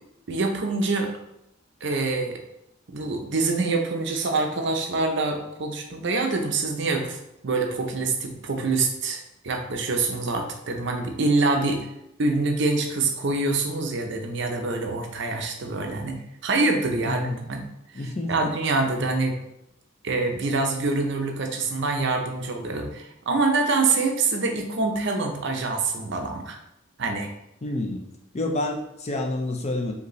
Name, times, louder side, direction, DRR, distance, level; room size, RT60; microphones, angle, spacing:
voice 1, 0.3-1.1 1.8-2.4 2.9-7.2 7.4-11.8 12.2-16.2 16.4-17.6 18.3-19.4 20.0-26.6 27.0-27.3, right 3 dB, 60° right, 3 dB, 0.6 m, -25 dB
voice 2, 17.1-17.4 17.9-18.5 27.6-28.0 28.3-29.9, left 2 dB, 30° left, 3 dB, 0.5 m, -28 dB
5.1 x 2.6 x 3.1 m, 0.80 s
head